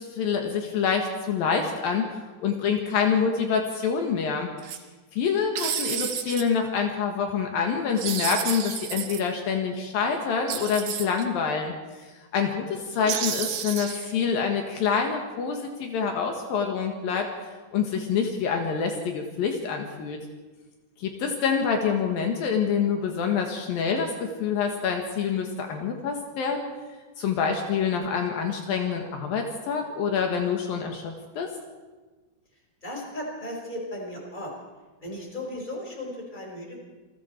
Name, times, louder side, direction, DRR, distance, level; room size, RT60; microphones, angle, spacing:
voice 1, 0.0-4.5 5.1-17.3 17.7-20.2 21.0-26.7 27.2-31.5, left 6 dB, 70° left, 3 dB, 3.3 m, -26 dB
sound 1, 4.6-4.8 5.6-6.4 8.0-9.2 10.5-11.2 13.1-14.1, right 9 dB, 70° right, 2.9 m, -31 dB
voice 2, 32.8-34.5 35.0-36.8, left 1 dB, 10° left, -1 dB, 4.9 m, -36 dB
28.5 x 21.5 x 4.5 m, 1.3 s
omnidirectional pair, 4.3 m